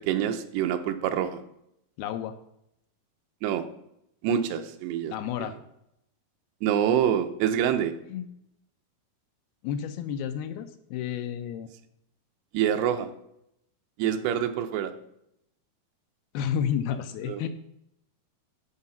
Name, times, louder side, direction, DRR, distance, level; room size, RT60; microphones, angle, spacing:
voice 1, 0.1-1.4 3.4-3.6 4.2-5.1 5.4-5.5 6.6-7.9 12.5-13.1 14.0-14.9 17.3-17.5, right 9 dB, 85° right, 8 dB, 2.9 m, -26 dB
voice 2, 2.0-2.3 5.1-5.6 8.1-8.3 9.6-11.7 16.3-17.5, left 8 dB, 80° left, 9 dB, 2.3 m, -31 dB
12.0 x 4.8 x 5.6 m, 0.78 s
omnidirectional pair, 4.7 m